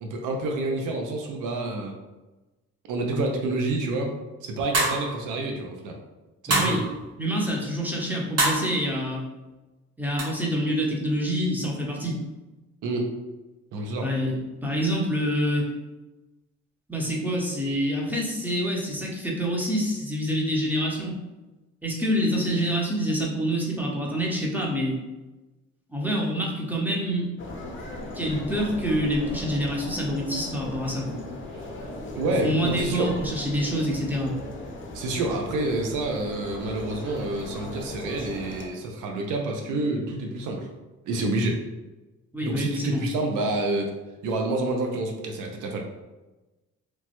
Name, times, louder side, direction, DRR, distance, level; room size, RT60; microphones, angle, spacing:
voice 1, 0.0-1.9 2.9-4.1 4.4-6.0 6.4-6.8 12.8-13.1 13.7-14.1 32.1-33.1 34.9-40.7 41.0-41.6 42.4-43.9 44.2-45.8, right 2 dB, 90° right, 2 dB, 0.6 m, -28 dB
sound 1, 4.7-5.2 6.5-6.9 8.4-8.7 10.2-10.3, right 2 dB, 55° right, 1.3 m, -23 dB
voice 2, 6.5-6.8 7.2-9.2 10.0-12.2 14.0-15.7 16.9-21.2 21.8-25.0 25.9-27.3 28.1-31.2 32.4-34.4 39.7-39.8 42.3-43.0, equal, 5° right, -2 dB, 0.7 m, -26 dB
sound 2, 27.4-38.7, left 1 dB, 40° left, 0.6 m, -38 dB
3.0 x 2.2 x 2.9 m, 1.1 s
cardioid pair, 90°, 30 cm